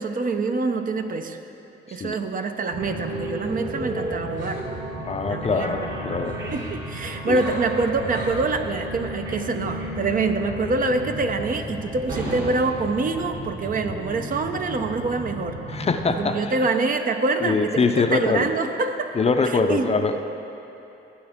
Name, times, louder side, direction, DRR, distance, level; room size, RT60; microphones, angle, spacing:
voice 1, 0.0-1.4 1.9-4.6 5.3-5.7 6.5-15.6 16.1-19.1 19.7-19.9, right 3 dB, 45° right, 6 dB, 0.7 m, -25 dB
sound 1, 2.7-16.3, right 1 dB, 60° right, 2.9 m, -33 dB
voice 2, 5.0-6.4 7.3-7.4 15.7-16.5 17.4-18.5 19.1-20.2, left 4 dB, 30° left, 6 dB, 0.6 m, -23 dB
15.5 x 8.8 x 3.6 m, 2.9 s
cardioid pair, 90°, 20 cm